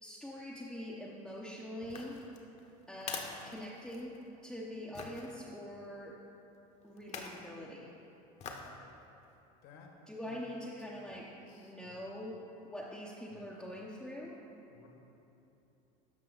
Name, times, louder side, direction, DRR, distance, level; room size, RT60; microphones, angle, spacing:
voice 1, 0.0-2.2 2.9-4.2 4.4-6.1 6.8-7.9 10.1-11.3 11.6-14.4, left 1 dB, 5° left, -5 dB, 0.8 m, -44 dB
sound 1, 1.8-4.3 5.0-5.3 7.0-7.5 8.4-8.8 9.2-9.3, left 5 dB, 35° left, 1.0 m, -45 dB
voice 2, 9.6-9.9 10.2-10.5 10.8-12.1 13.3-13.6 14.7-14.9, left 5 dB, 60° left, 2 dB, 1.5 m, -58 dB
13.0 x 5.5 x 3.9 m, 2.9 s
supercardioid pair, 115°, 19 cm